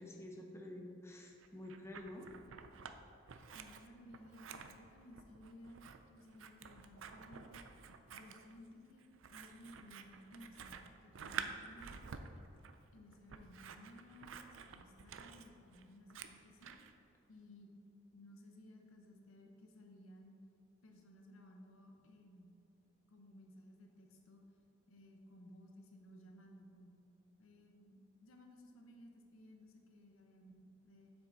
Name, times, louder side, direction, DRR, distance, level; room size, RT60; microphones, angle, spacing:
voice 1, 0.0-2.3, left 1 dB, 10° left, 1 dB, 0.7 m, -49 dB
Scissors, 1.4-3.0 3.3-16.9, right 6 dB, 65° right, 0.4 m, -50 dB
voice 2, 3.5-7.6 8.1-12.1 12.9-16.7 17.3-17.7 18.1-20.4 20.8-22.5 23.1-24.4 24.9-27.0 27.4-31.1, left 1 dB, 75° left, 2 dB, 0.9 m, -58 dB
7.5 x 5.9 x 4.0 m, 2.7 s
head